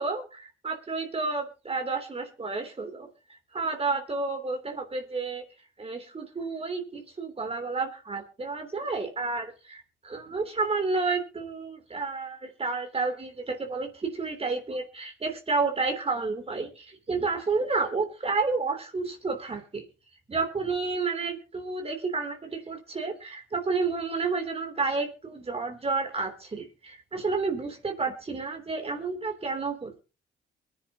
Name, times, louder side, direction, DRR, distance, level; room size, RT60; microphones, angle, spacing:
voice 1, 0.0-3.1 3.5-5.4 5.8-19.8 20.3-30.0, right 4 dB, 30° right, 5 dB, 3.2 m, -30 dB
23.0 x 10.5 x 2.9 m, 0.33 s
cardioid pair, 90°, 20 cm